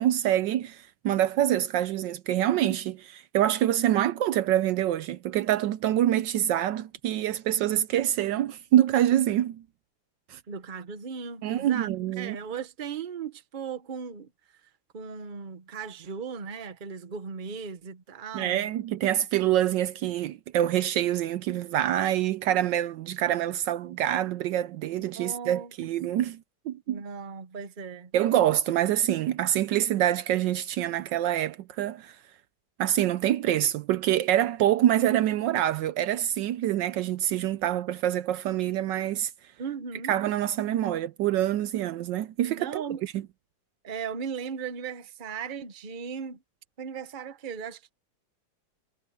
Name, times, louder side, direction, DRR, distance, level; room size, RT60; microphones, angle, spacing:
voice 1, 0.0-9.6 10.3-10.4 11.4-12.4 18.3-26.4 26.7-27.0 28.1-32.2 32.8-39.3 40.1-43.2, right 12 dB, 75° right, 1.2 m, -26 dB
voice 2, 10.5-11.9 12.2-14.3 14.9-18.7 25.1-25.7 26.9-28.1 39.6-40.2 42.6-43.0 43.8-46.4 46.8-47.9, right 6 dB, 30° right, 1.0 m, -37 dB
omnidirectional pair, 2.1 m